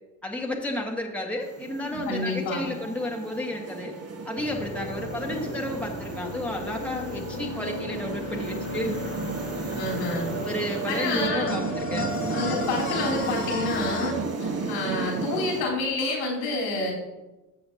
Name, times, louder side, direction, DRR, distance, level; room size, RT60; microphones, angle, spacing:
voice 1, 0.2-3.9 4.3-8.9 10.4-12.1, left 1 dB, 5° left, 0 dB, 1.6 m, -32 dB
sound 1, 1.4-15.6, right 4 dB, 30° right, 1.5 m, -33 dB
voice 2, 1.8-2.7 9.8-10.3 10.9-11.6 12.3-16.9, left 2 dB, 75° left, -4 dB, 3.6 m, -29 dB
sound 2, 4.4-14.1, left 4 dB, 25° left, 1.3 m, -36 dB
13.0 x 7.7 x 2.8 m, 1.1 s
figure-of-eight pair, 55°, 48 cm